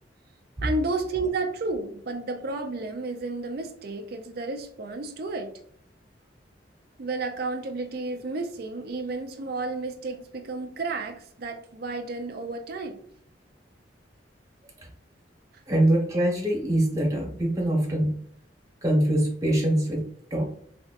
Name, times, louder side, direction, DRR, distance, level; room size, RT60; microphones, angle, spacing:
voice 1, 0.6-5.5 7.0-13.0, right 3 dB, 60° right, 0.5 m, -32 dB
voice 2, 15.7-18.1 18.8-20.0 20.3-20.4, right 1 dB, 20° right, 1.2 m, -23 dB
4.0 x 3.4 x 2.5 m
head